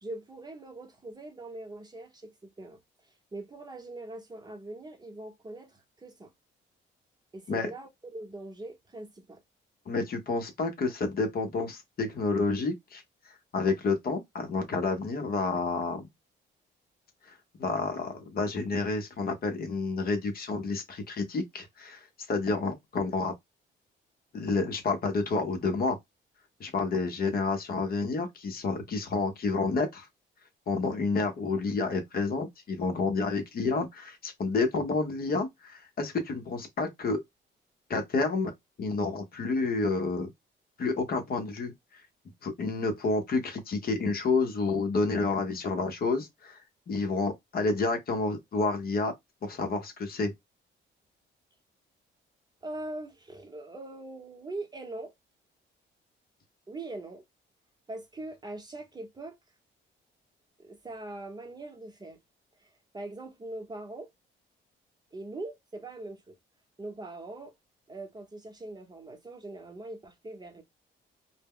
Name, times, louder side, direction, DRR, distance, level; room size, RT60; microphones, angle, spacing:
voice 1, 0.0-2.8 3.3-6.3 7.3-9.4 52.6-55.1 56.7-57.2 57.9-59.4 60.6-62.2 62.6-62.7 62.9-64.1 65.1-66.3 66.8-67.5 67.9-70.6, right 2 dB, 20° right, 0.8 m, -42 dB
voice 2, 9.9-13.0 13.5-16.1 17.3-17.4 17.6-23.3 24.3-26.0 26.6-30.1 30.7-37.2 37.9-38.5 38.8-40.3 40.8-42.0 42.4-46.6 46.9-49.1 49.4-50.3, left 3 dB, 50° left, 0.7 m, -29 dB
2.1 x 2.0 x 3.5 m
cardioid pair, 90°, 20 cm